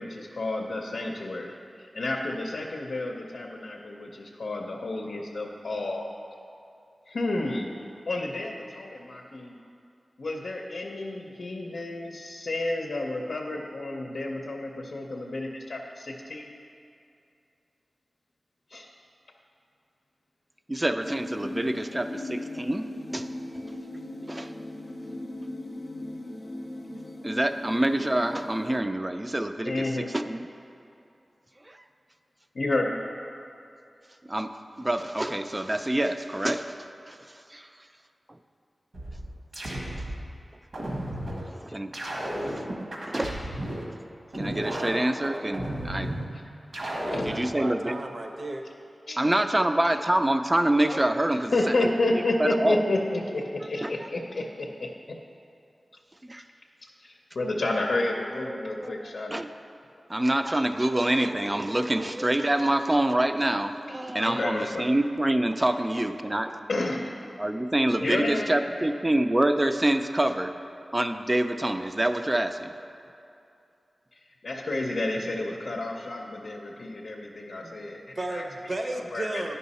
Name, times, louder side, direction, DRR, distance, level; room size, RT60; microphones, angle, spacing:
voice 1, 0.0-6.1 7.1-7.7 8.1-9.6 10.2-16.5 18.7-18.9 29.6-30.1 32.5-33.0 47.1-47.3 49.1-49.2 51.5-55.2 57.0-59.3 64.2-64.9 66.7-67.2 68.0-68.9 74.1-78.4 79.1-79.4, left 2 dB, 80° left, 0 dB, 0.6 m, -31 dB
voice 2, 20.7-22.8 23.1-23.3 24.3-24.5 27.2-29.7 30.1-30.4 31.7-31.8 34.3-34.5 34.8-36.7 37.1-37.2 37.5-37.7 41.5-41.9 42.2-42.3 43.0-43.4 44.3-46.2 47.2-48.0 49.1-51.5 51.8-51.9 52.4-52.9 53.8-53.9 56.2-56.4 58.5-59.5 60.1-66.6 67.4-70.5 70.9-72.7, right 1 dB, 20° right, 8 dB, 0.4 m, -26 dB
sound 1, 21.0-28.8, left 1 dB, 30° left, 0.6 m, -38 dB
sound 2, 38.9-40.2 40.7-41.4 41.9-43.9 44.3-46.2 46.7-47.4, right 1 dB, 70° right, 1.2 m, -33 dB
voice 3, 47.0-48.6 77.6-77.7 78.1-79.6, right 2 dB, 50° right, 3 dB, 0.7 m, -34 dB
9.6 x 5.5 x 4.1 m, 2.6 s
wide cardioid pair, 95°, 0 cm